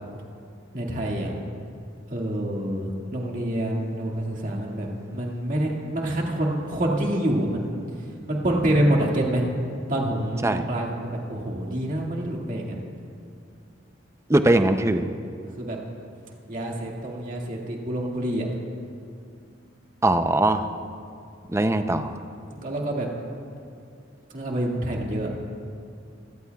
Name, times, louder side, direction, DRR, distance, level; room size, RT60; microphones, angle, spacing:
voice 1, 0.7-1.3 2.1-4.9 5.1-7.8 8.3-9.5 9.9-12.8 15.6-15.8 16.5-18.5 22.5-23.1 24.3-25.3, right 1 dB, 45° right, -1 dB, 2.0 m, -26 dB
voice 2, 14.3-15.1 20.0-20.7 21.5-22.2, right 1 dB, 15° right, 8 dB, 0.5 m, -21 dB
24.0 x 14.5 x 2.3 m, 2.4 s
head